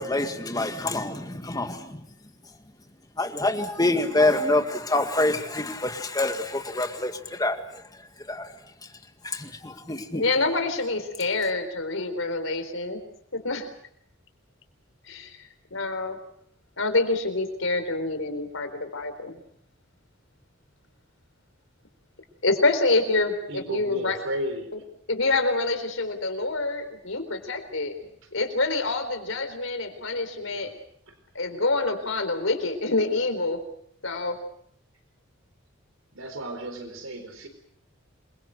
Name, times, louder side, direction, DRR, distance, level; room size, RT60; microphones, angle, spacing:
voice 1, 0.0-2.0 3.2-7.6 8.3-8.5 9.2-10.2, left 2 dB, 20° left, 6 dB, 2.0 m, -26 dB
voice 2, 10.1-13.0 13.3-13.7 15.1-15.4 15.7-16.2 16.8-19.3 22.4-24.2 25.1-27.9 28.3-30.7 31.3-33.6 34.0-34.4, left 3 dB, 80° left, 9 dB, 4.1 m, -26 dB
voice 3, 23.5-24.7 30.4-30.7 31.1-31.2 36.1-37.5, equal, 85° right, 8 dB, 4.3 m, -34 dB
27.5 x 23.0 x 6.6 m, 0.68 s
head